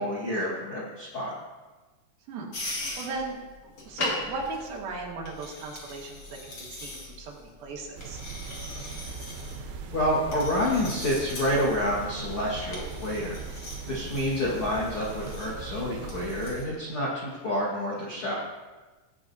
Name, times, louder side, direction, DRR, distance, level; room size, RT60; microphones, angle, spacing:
voice 1, 0.0-1.3 9.9-13.4 13.9-18.3, left 1 dB, 80° left, -7 dB, 1.2 m, -28 dB
voice 2, 2.3-3.4 3.6-8.2 13.9-14.1, right 3 dB, 60° right, -2 dB, 3.1 m, -37 dB
sound 1, 2.5-16.6, left 2 dB, 45° left, 1.8 m, -40 dB
sound 2, 8.0-16.5, right 5 dB, 80° right, 3.4 m, -39 dB
17.0 x 8.5 x 2.7 m, 1.3 s
omnidirectional pair, 5.5 m